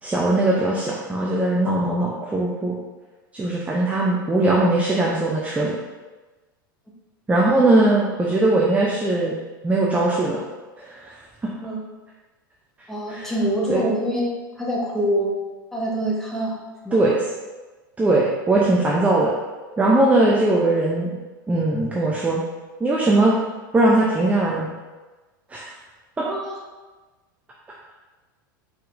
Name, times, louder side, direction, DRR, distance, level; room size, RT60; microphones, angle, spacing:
voice 1, 0.0-2.7 3.3-5.7 7.3-9.3 9.6-10.4 10.8-11.2 13.1-13.3 13.7-13.8 16.9-17.2 18.0-19.3 19.8-21.1 21.5-22.4 22.8-23.3 23.7-24.7 25.5-25.7 26.2-26.3, right 2 dB, 10° right, -4 dB, 0.6 m, -20 dB
voice 2, 12.9-15.4 15.7-16.6 16.8-17.0 26.2-26.6, equal, 5° left, -4 dB, 1.0 m, -25 dB
4.3 x 3.6 x 2.6 m, 1.2 s
hypercardioid pair, 90°, 12 cm